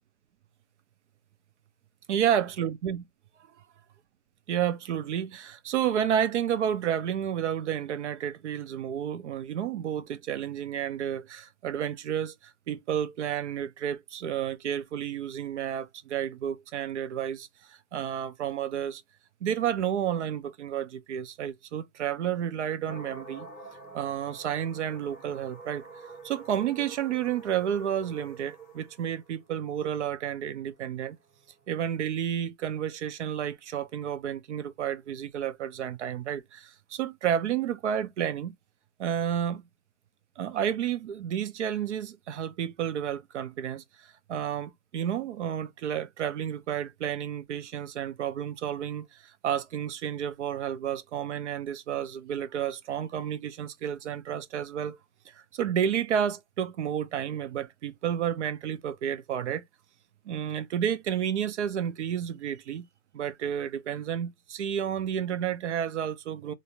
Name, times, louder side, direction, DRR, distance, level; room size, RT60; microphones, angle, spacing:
voice 1, 2.1-3.1 4.5-19.0 19.4-23.5 23.9-25.8 26.2-31.2 31.7-38.6 39.0-39.6 40.4-55.0 55.3-59.6 60.3-62.9 63.1-66.5, right 9 dB, 55° right, 0.5 m, -31 dB
sound 1, 22.9-31.8, right 3 dB, 10° left, 0.4 m, -47 dB
2.5 x 2.0 x 3.2 m
hypercardioid pair, 150°, 44 cm